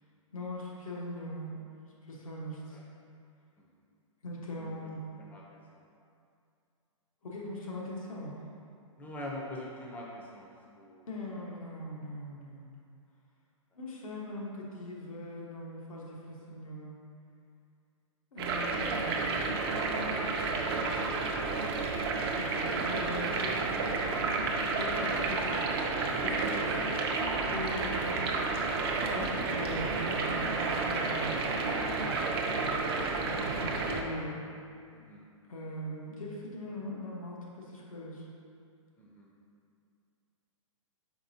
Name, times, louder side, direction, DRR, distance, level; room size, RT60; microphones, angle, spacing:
voice 1, 0.3-1.6 2.0-2.8 4.2-5.1 7.2-8.3 11.1-12.8 13.7-17.0 18.3-19.3 22.3-24.1 24.8-28.2 29.0-34.4 35.5-38.3, left 1 dB, 90° left, -3 dB, 1.1 m, -41 dB
voice 2, 5.2-5.8 9.0-11.1 34.1-34.2 34.9-35.2 39.0-39.3, left 1 dB, 10° left, -3 dB, 0.5 m, -44 dB
sound 1, 18.4-34.0, right 3 dB, 45° right, 0.5 m, -31 dB
5.0 x 3.9 x 2.7 m, 2.4 s
hypercardioid pair, 145°, 17 cm